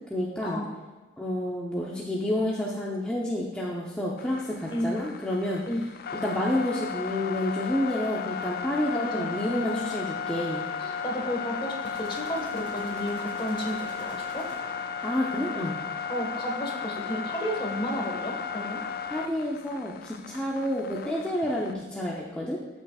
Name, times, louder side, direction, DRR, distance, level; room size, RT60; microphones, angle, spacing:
voice 1, 0.1-0.6 1.2-5.6 6.1-10.6 15.0-15.8 19.1-22.6, left 1 dB, 5° left, -5 dB, 0.8 m, -29 dB
sound 1, 4.2-21.7, left 6 dB, 55° left, 0.3 m, -35 dB
voice 2, 8.9-9.3 9.7-9.9 10.8-14.4 16.1-18.8, equal, 30° left, 0 dB, 1.5 m, -32 dB
sound 2, 11.9-15.0, right 1 dB, 80° right, 2.8 m, -49 dB
14.5 x 6.3 x 2.4 m, 1.2 s
head